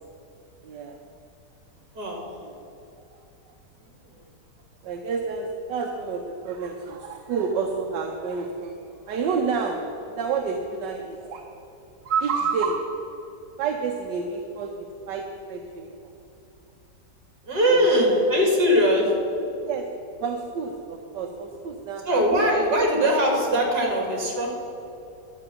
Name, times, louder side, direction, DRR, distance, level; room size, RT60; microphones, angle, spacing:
voice 1, 0.6-1.0 2.4-2.6 4.8-8.7 9.1-9.8 10.1-11.4 12.0-12.9 13.6-16.1 17.7-18.2 19.6-19.9 20.2-22.5, right 5 dB, 85° right, 3 dB, 1.5 m, -29 dB
voice 2, 17.4-19.1 22.1-24.6, equal, 65° right, 0 dB, 3.2 m, -21 dB
12.0 x 8.3 x 7.0 m, 2.8 s
omnidirectional pair, 1.8 m